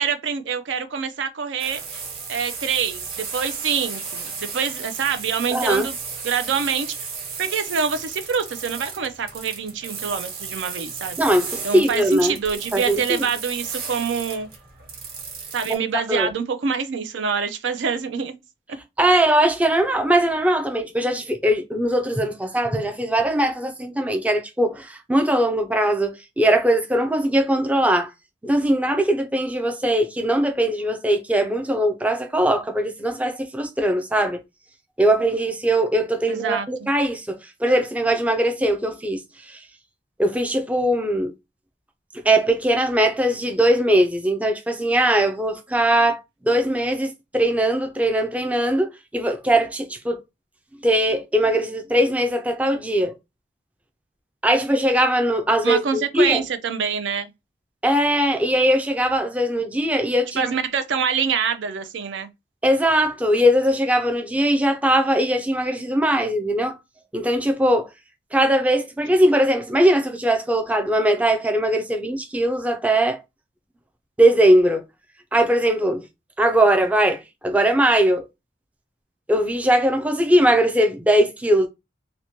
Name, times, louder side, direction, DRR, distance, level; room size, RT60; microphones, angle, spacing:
voice 1, 0.0-1.8 2.3-5.9 6.2-6.9 7.4-11.2 11.6-14.5 15.5-18.3 19.1-19.2 36.3-36.9 55.6-57.3 60.4-62.3, right 6 dB, 85° right, 0.4 m, -25 dB
sound 1, 1.6-15.8, right 5 dB, 55° right, 1.0 m, -34 dB
voice 2, 5.5-5.9 11.2-12.4 12.7-13.2 15.7-16.3 19.0-28.1 28.4-34.4 35.0-39.6 40.2-41.3 42.2-46.2 46.4-50.2 50.8-53.1 54.4-56.4 57.8-60.5 62.6-66.8 67.1-67.9 68.3-73.2 74.2-74.8 75.3-76.0 76.4-78.2 79.3-81.7, right 1 dB, 10° right, 0.3 m, -20 dB
2.9 x 2.1 x 2.7 m
head